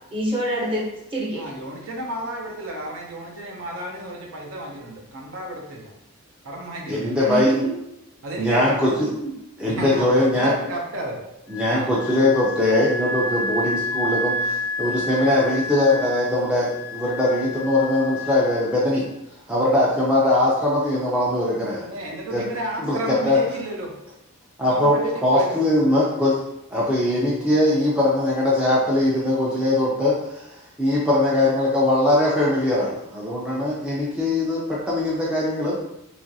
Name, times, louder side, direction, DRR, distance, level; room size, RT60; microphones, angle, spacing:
voice 1, 0.1-1.4 7.2-7.7 9.1-9.3, right 1 dB, 25° right, -5 dB, 0.8 m, -26 dB
voice 2, 1.3-5.9 6.4-7.4 8.2-8.8 9.7-11.2 11.7-11.9 21.8-23.9 24.7-25.6, right 1 dB, 65° right, -1 dB, 0.6 m, -31 dB
voice 3, 6.9-7.5 8.4-8.9 9.6-10.5 11.5-19.1 19.5-21.9 22.3-22.4 22.8-23.4 24.6-25.0 25.2-26.3 26.7-30.5 30.8-35.8, left 1 dB, 5° right, -6 dB, 0.4 m, -21 dB
Wind instrument woodwind instrument, 11.5-19.0, left 1 dB, 75° left, 0.5 m, -30 dB
3.0 x 2.4 x 2.6 m, 0.85 s
head